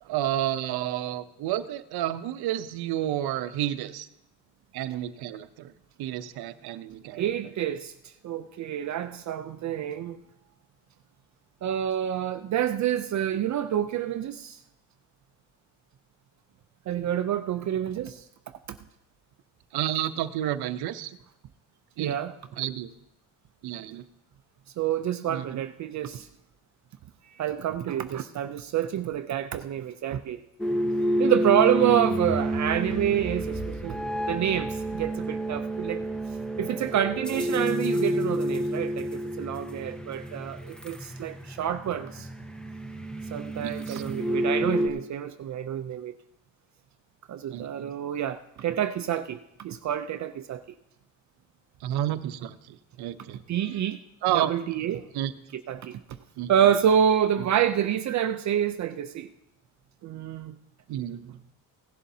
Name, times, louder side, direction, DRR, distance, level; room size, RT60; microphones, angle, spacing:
voice 1, 0.0-4.1 4.7-5.7 6.0-7.5 19.7-21.2 22.0-22.2 22.6-22.9 23.6-24.0 25.3-25.6 31.8-31.9 43.6-44.0 47.5-47.9 51.8-53.4 54.2-54.5 55.1-55.3 56.4-56.5 57.4-57.5 60.9-61.4, right 12 dB, 85° right, 0.7 m, -31 dB
voice 2, 7.2-10.2 11.6-14.6 16.9-18.2 22.0-22.3 24.8-26.3 27.3-30.4 31.2-36.0 36.6-42.3 43.3-46.1 47.3-50.6 53.5-54.0 54.3-55.0 55.5-56.0 56.5-59.3 60.0-60.6, right 10 dB, 50° right, 0.5 m, -28 dB
sound 1, 30.6-44.9, right 1 dB, ahead, 0.7 m, -29 dB
17.0 x 11.0 x 2.7 m
cardioid pair, 140°, 38 cm